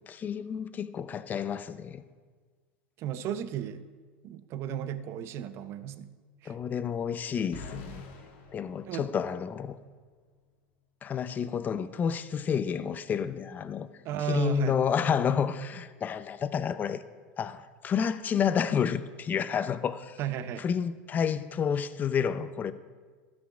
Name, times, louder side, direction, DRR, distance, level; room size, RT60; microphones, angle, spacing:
voice 1, 0.1-2.0 6.5-8.0 8.5-9.8 11.0-13.9 14.3-17.0 17.4-20.2 20.6-22.7, left 7 dB, 30° left, 0.5 m, -30 dB
voice 2, 3.0-3.9 4.2-6.1 6.4-6.6 8.9-9.1 14.0-14.8 20.2-20.6, right 10 dB, 50° right, 0.6 m, -34 dB
sound 1, 7.5-9.7, left 3 dB, 70° left, 1.5 m, -46 dB
13.0 x 6.1 x 4.9 m
hypercardioid pair, 100°, 6 cm